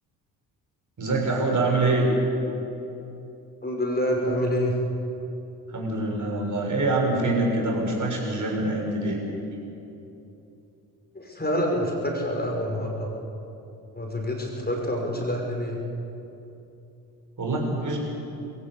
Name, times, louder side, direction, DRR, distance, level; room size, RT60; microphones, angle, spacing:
voice 1, 1.0-2.1 5.7-9.2 17.4-18.0, right 2 dB, 40° right, -1 dB, 7.0 m, -25 dB
voice 2, 3.6-4.7 11.1-13.1 14.0-15.8, equal, 20° left, 0 dB, 5.9 m, -27 dB
22.5 x 16.5 x 8.5 m, 2.9 s
figure-of-eight pair, 45°, 49 cm